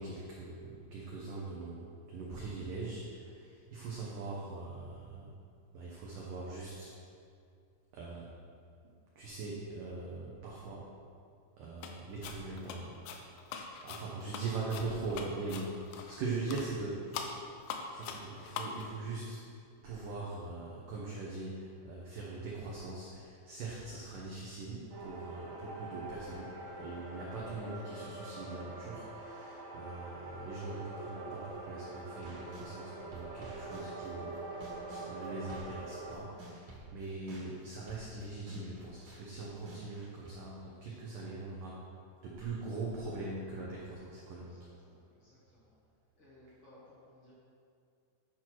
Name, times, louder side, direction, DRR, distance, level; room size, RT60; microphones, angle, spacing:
voice 1, 0.0-5.3 5.7-6.9 7.9-8.3 9.2-10.9 11.6-13.3 13.8-17.5 17.9-19.4 19.8-41.8 42.2-44.7, right 3 dB, 80° right, -4 dB, 1.9 m, -41 dB
sound 1, 11.8-12.0 12.2-16.2 16.5-16.7 17.1-18.8, left 6 dB, 85° left, 3.1 m, -42 dB
Fmaj-calm flange, 24.9-36.2, right 2 dB, 65° right, 1.8 m, -45 dB
sound 2, 32.0-32.7 33.1-35.9 36.1-40.3, right 1 dB, 50° right, 1.9 m, -51 dB
voice 2, 44.3-45.7 46.1-47.3, left 1 dB, 70° left, -7 dB, 1.2 m, -61 dB
10.5 x 6.0 x 4.6 m, 2.4 s
omnidirectional pair, 5.2 m